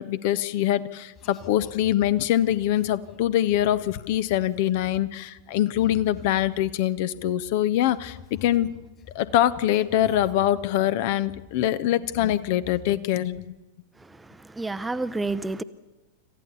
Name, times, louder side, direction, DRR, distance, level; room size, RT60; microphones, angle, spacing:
voice 1, 0.0-8.7 9.1-13.5, left 12 dB, 50° left, 0.8 m, -24 dB
sound 1, 1.2-7.6 7.9-11.7 12.0-13.0, left 7 dB, 30° left, 2.9 m, -48 dB
voice 2, 14.0-15.6, right 3 dB, 10° right, 0.6 m, -30 dB
26.5 x 15.0 x 7.0 m
figure-of-eight pair, 90°, 0 cm